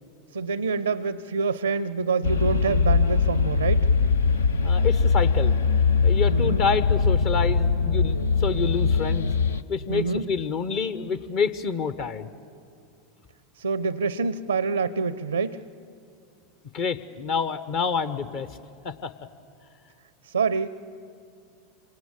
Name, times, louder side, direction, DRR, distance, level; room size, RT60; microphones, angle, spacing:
voice 1, 0.3-3.9 6.3-6.6 9.9-10.3 13.6-15.6 20.2-20.7, right 5 dB, 80° right, 18 dB, 0.5 m, -26 dB
sound 1, 2.2-9.6, left 5 dB, 75° left, 0.6 m, -21 dB
voice 2, 4.6-5.6 6.0-9.3 9.7-12.3 16.7-18.6 18.8-19.1, left 5 dB, 50° left, 13 dB, 1.0 m, -27 dB
26.5 x 25.5 x 7.4 m, 2.5 s
figure-of-eight pair, 85°, 0 cm